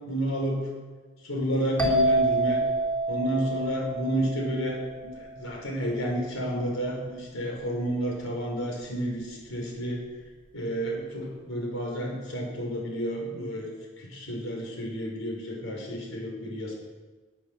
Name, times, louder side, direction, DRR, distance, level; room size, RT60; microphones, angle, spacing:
voice 1, 0.1-0.6 1.2-2.6 3.1-10.0 10.5-13.7 14.0-16.7, equal, 80° left, -1 dB, 5.4 m, -31 dB
sound 1, 1.8-5.4, right 2 dB, 5° left, 2.6 m, -27 dB
18.5 x 9.6 x 6.9 m, 1.3 s
head